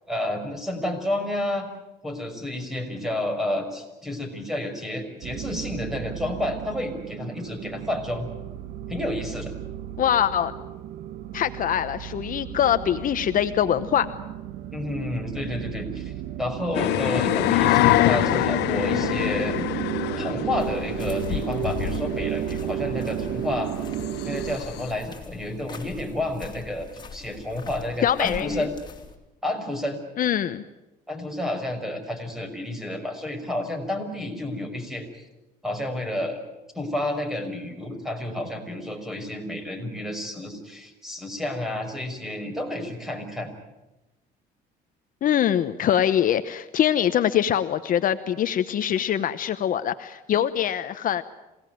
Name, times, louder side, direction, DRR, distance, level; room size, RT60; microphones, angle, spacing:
voice 1, 0.1-1.7 2.0-8.3 8.9-9.5 14.7-16.1 16.4-19.6 20.2-23.7 24.3-28.7 29.4-30.0 31.1-35.3 35.6-36.4 36.7-43.5, left 1 dB, ahead, 6 dB, 5.8 m, -30 dB
sound 1, 5.2-24.6, right 11 dB, 80° right, 1.1 m, -33 dB
voice 2, 10.0-10.5 11.3-14.1 28.0-28.7 30.2-30.6 45.2-51.2, left 10 dB, 55° left, 11 dB, 1.0 m, -23 dB
sound 2, 16.7-24.9, left 16 dB, 85° left, 0.8 m, -25 dB
sound 3, 20.6-29.2, left 5 dB, 25° left, 3.6 m, -44 dB
27.0 x 18.0 x 9.3 m, 1.0 s
cardioid pair, 110°, 17 cm